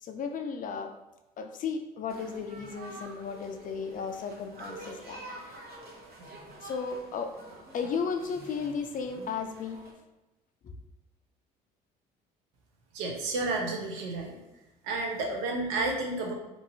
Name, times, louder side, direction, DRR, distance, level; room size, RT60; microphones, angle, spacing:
voice 1, 0.0-0.9 1.4-5.6 6.6-7.3 7.7-9.8 10.6-10.7, left 5 dB, 40° left, 6 dB, 0.4 m, -35 dB
sound 1, 2.1-9.9, right 2 dB, 50° right, 0.9 m, -47 dB
voice 2, 12.9-14.4 14.8-16.3, right 2 dB, 75° right, 0 dB, 0.8 m, -31 dB
3.0 x 2.7 x 2.6 m, 1.0 s
hypercardioid pair, 60°, 21 cm